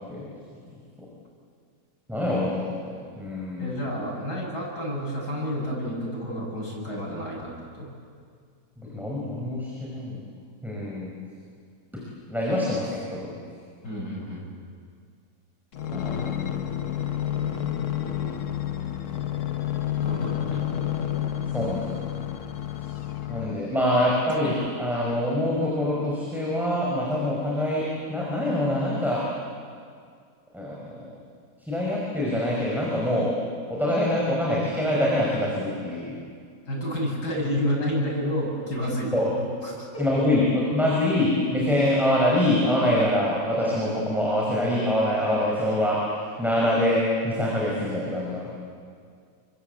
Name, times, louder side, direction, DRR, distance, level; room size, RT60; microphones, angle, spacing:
voice 1, 2.1-3.8 8.8-10.2 10.6-11.1 12.3-13.4 15.9-16.4 21.5-22.0 23.3-29.2 30.5-31.1 31.6-33.3 33.7-36.1 39.1-39.3 40.0-48.5, left 1 dB, ahead, -5 dB, 5.8 m, -25 dB
voice 2, 3.6-7.5 7.8-7.9 13.8-14.5 20.0-20.6 36.7-39.1 39.4-40.2, equal, 90° left, -3 dB, 8.6 m, -30 dB
sound 1, 15.7-23.7 24.3-25.6 26.2-26.3, left 10 dB, 55° left, 1.3 m, -30 dB
29.5 x 24.5 x 8.3 m, 2.1 s
omnidirectional pair, 1.7 m